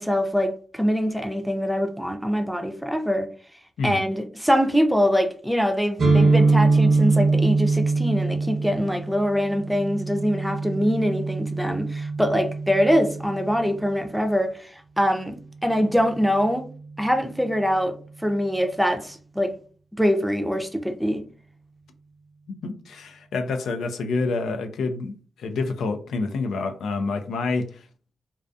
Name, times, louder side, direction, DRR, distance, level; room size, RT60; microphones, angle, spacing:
voice 1, 0.0-3.3 3.8-15.4 15.6-16.6 17.0-18.0 18.2-19.5 20.0-21.2, equal, ahead, 0.5 m, -23 dB
sound 1, 6.0-13.8, right 3 dB, 65° right, 0.6 m, -23 dB
voice 2, 22.5-27.9, left 3 dB, 85° left, 0.3 m, -28 dB
2.3 x 2.3 x 2.5 m
cardioid pair, 55°, 0 cm